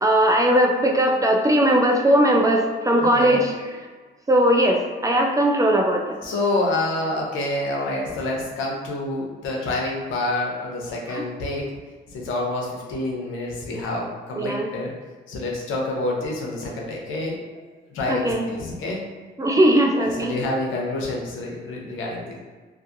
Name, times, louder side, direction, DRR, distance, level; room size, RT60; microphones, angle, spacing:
voice 1, 0.0-3.5 4.3-6.2 11.1-11.3 14.4-14.7 18.1-18.5 19.4-20.3, right 1 dB, 15° right, 1 dB, 0.3 m, -19 dB
voice 2, 3.1-3.5 6.2-11.7 12.1-14.9 15.3-17.4 17.9-19.0 19.9-22.4, left 2 dB, 85° left, -1 dB, 0.7 m, -27 dB
2.5 x 2.4 x 2.5 m, 1.4 s
cardioid pair, 90°, 20 cm